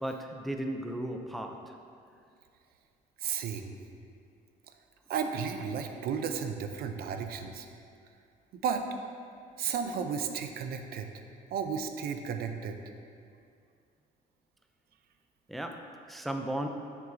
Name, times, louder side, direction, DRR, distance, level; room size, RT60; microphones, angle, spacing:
voice 1, 0.0-1.8 15.5-16.7, right 1 dB, ahead, 4 dB, 0.4 m, -35 dB
voice 2, 3.2-3.7 5.1-7.7 8.5-8.8 9.6-11.1 11.5-12.8, right 6 dB, 65° right, 6 dB, 0.5 m, -33 dB
7.7 x 6.2 x 2.6 m, 2.3 s
cardioid pair, 110°, 17 cm